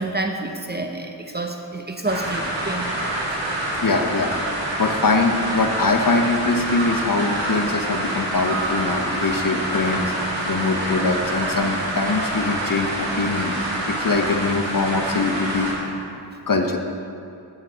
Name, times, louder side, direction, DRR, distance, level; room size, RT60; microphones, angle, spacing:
voice 1, 0.0-2.9, right 2 dB, 25° right, 3 dB, 0.6 m, -28 dB
sound 1, 2.0-15.7, right 1 dB, 85° right, 1.7 m, -26 dB
voice 2, 3.8-10.1 10.5-13.6 13.9-15.7 16.5-16.8, left 3 dB, 50° left, 4 dB, 0.7 m, -22 dB
7.7 x 7.4 x 4.5 m, 2.5 s
wide cardioid pair, 55°, 44 cm